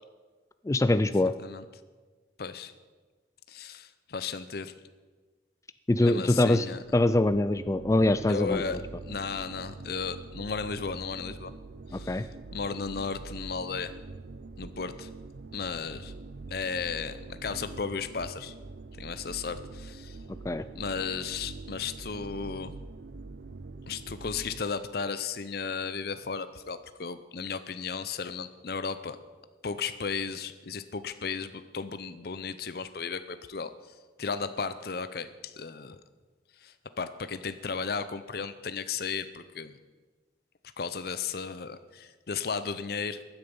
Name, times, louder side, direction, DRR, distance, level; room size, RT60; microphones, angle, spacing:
voice 1, 0.6-1.3 5.9-6.7 6.9-8.8 11.9-12.2 20.4-20.7, left 2 dB, 15° left, 13 dB, 0.3 m, -24 dB
voice 2, 2.4-2.7 3.5-4.7 6.0-6.8 8.3-8.8 9.0-11.5 11.9-12.3 12.5-13.9 14.6-15.1 15.5-16.1 16.5-18.5 19.0-20.2 20.7-22.7 23.9-29.2 29.6-33.7 34.2-36.0 36.6-39.8 40.8-43.2, left 5 dB, 55° left, 12 dB, 0.6 m, -35 dB
sound 1, 6.6-24.6, right 3 dB, 60° right, 0.5 m, -44 dB
15.5 x 10.0 x 5.4 m, 1.3 s
head